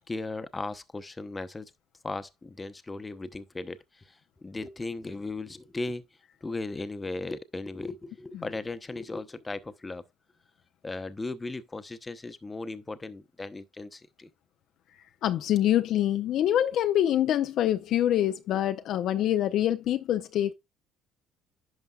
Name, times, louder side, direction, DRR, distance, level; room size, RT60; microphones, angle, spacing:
voice 1, 0.1-1.7 2.0-3.8 4.4-6.0 6.4-10.0 10.8-14.3, left 3 dB, 20° left, 0.9 m, -36 dB
voice 2, 15.2-20.5, left 11 dB, 65° left, 0.5 m, -25 dB
11.0 x 5.5 x 2.4 m
hypercardioid pair, 65°, 0 cm